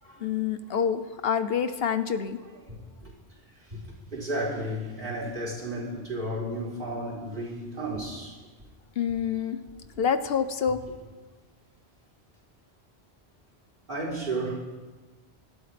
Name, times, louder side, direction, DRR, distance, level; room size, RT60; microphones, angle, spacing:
voice 1, 0.2-2.4 9.0-9.6 10.0-10.8, left 7 dB, 65° left, 11 dB, 0.9 m, -27 dB
voice 2, 2.5-3.1 3.6-8.4 13.9-14.6, right 1 dB, 50° right, -5 dB, 4.1 m, -33 dB
25.5 x 12.5 x 3.4 m, 1.3 s
omnidirectional pair, 1.1 m